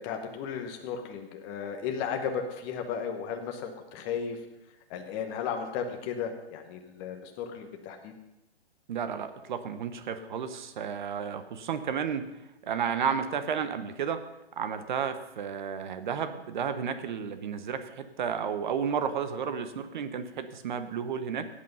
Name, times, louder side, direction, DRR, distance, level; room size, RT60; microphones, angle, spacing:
voice 1, 0.0-4.4 4.9-8.1, left 7 dB, 20° left, 5 dB, 1.1 m, -35 dB
voice 2, 8.9-12.3 12.6-14.2 14.6-21.5, right 7 dB, 45° right, 10 dB, 1.0 m, -32 dB
15.0 x 8.4 x 5.5 m, 0.94 s
hypercardioid pair, 155°, 32 cm